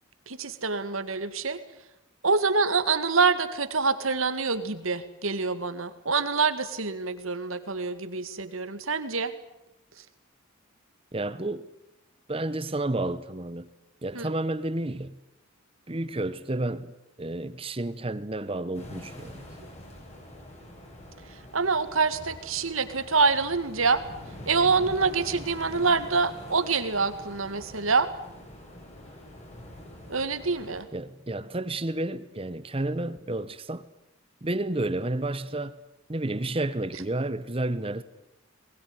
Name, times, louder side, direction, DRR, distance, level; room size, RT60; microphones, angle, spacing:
voice 1, 0.3-1.6 2.2-9.3 14.1-14.3 21.5-24.0 24.5-28.1 30.1-30.9, right 4 dB, 80° right, 2.0 m, -26 dB
voice 2, 11.1-11.7 12.3-13.7 14.0-15.1 15.9-16.9 17.2-19.4 30.9-33.9 34.4-35.8 36.1-38.0, right 2 dB, 25° right, 0.8 m, -31 dB
sound 1, 18.7-30.8, left 1 dB, 30° left, 5.5 m, -45 dB
21.0 x 21.0 x 9.8 m
head